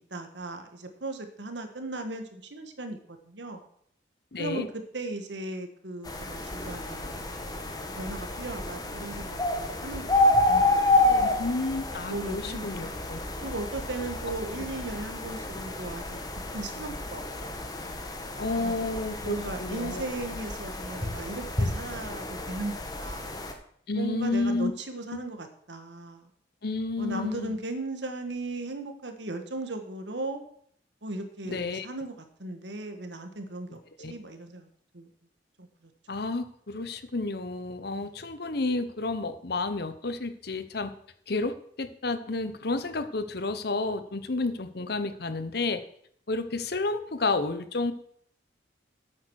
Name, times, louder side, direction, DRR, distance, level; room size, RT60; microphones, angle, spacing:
voice 1, 0.0-3.7 4.4-4.7 4.9-10.2 10.5-10.7 11.0-11.3 12.1-13.0 13.4-17.5 18.6-18.9 19.2-23.3 23.9-26.3 27.0-30.4 31.0-34.7 34.9-35.1 35.6-35.9 37.9-38.1, right 2 dB, 80° right, 6 dB, 1.7 m, -37 dB
voice 2, 4.3-4.7 11.2-13.2 18.4-20.0 23.9-24.7 25.1-25.2 26.6-27.5 31.4-31.9 34.0-34.1 36.1-40.9 41.3-45.8 46.3-47.9, left 3 dB, 60° left, 11 dB, 1.0 m, -31 dB
sound 1, 6.0-23.5, left 2 dB, 20° left, 1.4 m, -29 dB
8.9 x 8.8 x 6.4 m, 0.64 s
head